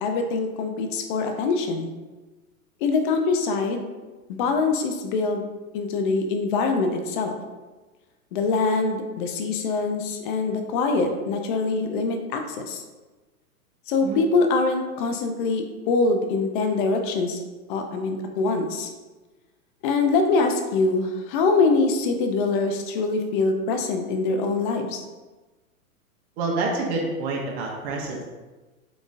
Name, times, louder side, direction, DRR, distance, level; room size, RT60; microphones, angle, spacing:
voice 1, 0.0-1.9 2.8-3.9 4.3-5.4 5.7-7.3 8.3-12.8 13.9-17.4 17.7-18.9 19.8-25.0, left 3 dB, 35° left, 5 dB, 0.5 m, -24 dB
voice 2, 26.4-28.2, right 3 dB, 45° right, -1 dB, 0.8 m, -27 dB
3.9 x 3.8 x 2.5 m, 1.2 s
hypercardioid pair, 120°, 44 cm